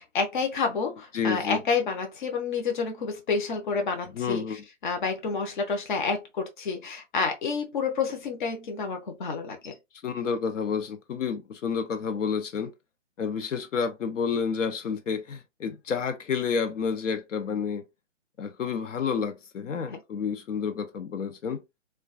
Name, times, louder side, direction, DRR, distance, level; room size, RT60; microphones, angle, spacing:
voice 1, 0.0-9.7 19.9-20.0, left 5 dB, 40° left, 0.6 m, -29 dB
voice 2, 1.1-1.6 4.1-4.6 10.0-12.7 13.2-17.8 18.4-21.6, left 6 dB, 80° left, 0.6 m, -30 dB
2.2 x 2.2 x 2.4 m
hypercardioid pair, 155°, 37 cm